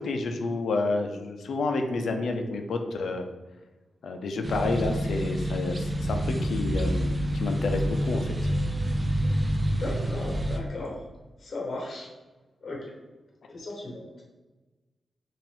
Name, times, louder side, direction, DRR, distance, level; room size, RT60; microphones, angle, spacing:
voice 1, 0.0-3.3 4.0-8.3, left 3 dB, 75° left, 5 dB, 0.5 m, -29 dB
sound 1, 4.4-10.6, equal, 20° right, 0.4 m, -27 dB
voice 2, 9.6-11.0 11.4-12.1 12.6-12.9 13.5-14.2, left 2 dB, 50° left, -2 dB, 1.1 m, -36 dB
5.7 x 2.6 x 3.6 m, 1.2 s
wide cardioid pair, 140°, 0 cm